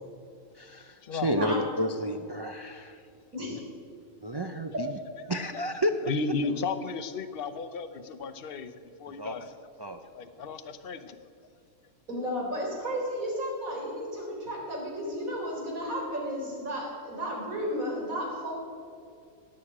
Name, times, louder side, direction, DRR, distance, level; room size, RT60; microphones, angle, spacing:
voice 1, 0.5-3.0 4.2-5.0 5.3-5.9 9.1-9.4 9.8-10.0, equal, 35° right, 6 dB, 0.3 m, -31 dB
voice 2, 3.3-3.7 12.1-18.5, equal, 70° right, -2 dB, 4.2 m, -33 dB
voice 3, 6.0-8.7 9.0-9.5 10.1-11.2, left 4 dB, 45° left, 9 dB, 0.9 m, -34 dB
18.0 x 6.7 x 8.7 m, 2.3 s
omnidirectional pair, 1.5 m